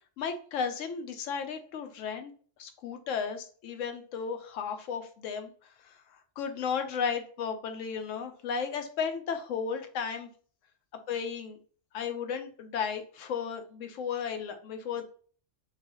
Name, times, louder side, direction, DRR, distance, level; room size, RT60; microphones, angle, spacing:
voice 1, 0.2-2.3 2.6-5.5 5.8-6.0 6.4-10.3 11.1-11.6 11.9-15.0, left 6 dB, 90° left, 6 dB, 1.0 m, -34 dB
4.0 x 2.3 x 2.8 m, 0.43 s
omnidirectional pair, 1.3 m